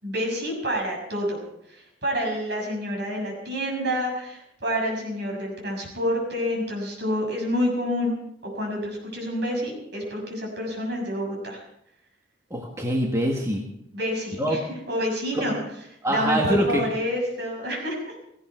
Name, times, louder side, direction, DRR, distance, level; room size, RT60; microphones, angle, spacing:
voice 1, 0.0-1.4 1.7-8.1 8.4-11.6 13.9-15.6 16.1-18.2, equal, 60° right, 0 dB, 6.6 m, -28 dB
voice 2, 12.5-13.6 14.4-14.6 15.3-15.5 16.0-16.8, equal, 15° right, 0 dB, 1.8 m, -24 dB
17.5 x 16.0 x 4.5 m, 0.75 s
head